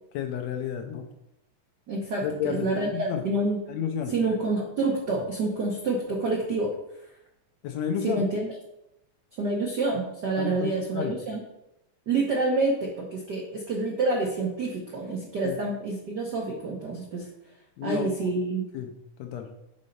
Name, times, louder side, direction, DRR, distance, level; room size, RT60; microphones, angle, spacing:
voice 1, 0.1-1.1 2.1-3.2 3.7-4.1 7.6-8.2 10.4-11.1 15.4-15.6 17.8-18.3 18.7-18.9 19.2-19.5, left 7 dB, 75° left, 5 dB, 1.7 m, -31 dB
voice 2, 1.9-3.6 4.1-6.7 8.0-8.5 9.3-11.4 12.1-17.3 17.8-18.7, right 2 dB, 70° right, -1 dB, 0.9 m, -28 dB
6.4 x 4.2 x 5.3 m, 0.86 s
omnidirectional pair, 3.4 m